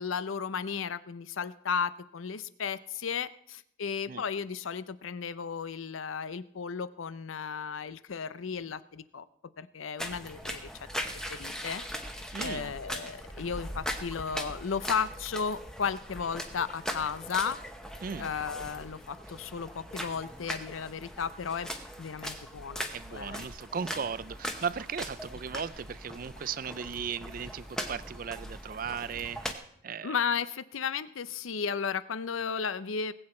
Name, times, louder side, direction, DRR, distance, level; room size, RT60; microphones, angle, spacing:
voice 1, 0.0-9.2 9.6-10.7 11.3-11.8 12.4-17.6 18.2-21.7 22.0-23.5 30.0-33.1, left 6 dB, 90° left, 15 dB, 0.6 m, -34 dB
sound 1, 10.0-29.5, equal, 5° left, 0.9 m, -40 dB
voice 2, 12.3-12.7 18.0-18.3 22.9-30.2, right 6 dB, 45° right, 17 dB, 0.4 m, -37 dB
19.5 x 7.9 x 4.3 m, 0.69 s
head